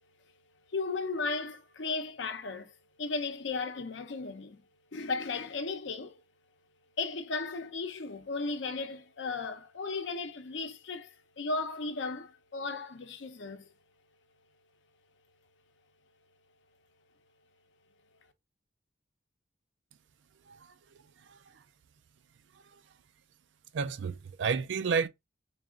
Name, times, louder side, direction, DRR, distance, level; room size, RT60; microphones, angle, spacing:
voice 1, 0.7-2.7 3.0-4.6 4.9-6.2 7.0-13.7, left 3 dB, 70° left, 0.7 m, -35 dB
voice 2, 23.7-25.1, right 5 dB, 70° right, 0.4 m, -31 dB
3.3 x 2.4 x 3.7 m
head